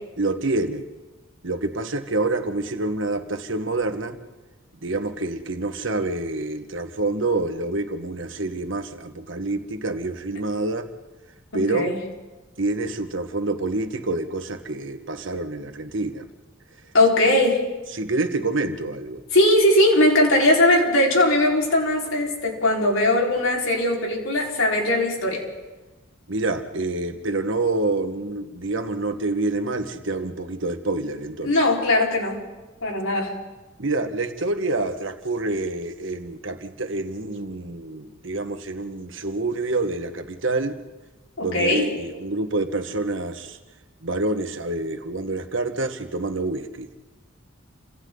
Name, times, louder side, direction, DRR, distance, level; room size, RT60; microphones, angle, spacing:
voice 1, 0.2-0.8 1.4-4.2 4.8-10.9 11.5-11.9 12.6-16.3 17.9-19.2 26.3-31.5 33.8-40.8 41.4-43.6 44.0-46.9, right 2 dB, 65° right, 7 dB, 1.7 m, -27 dB
voice 2, 11.5-12.0 16.9-17.6 19.3-25.4 31.4-32.4 32.8-33.3 41.4-41.8, left 1 dB, 85° left, -1 dB, 4.9 m, -19 dB
29.5 x 26.0 x 4.0 m, 1.1 s
head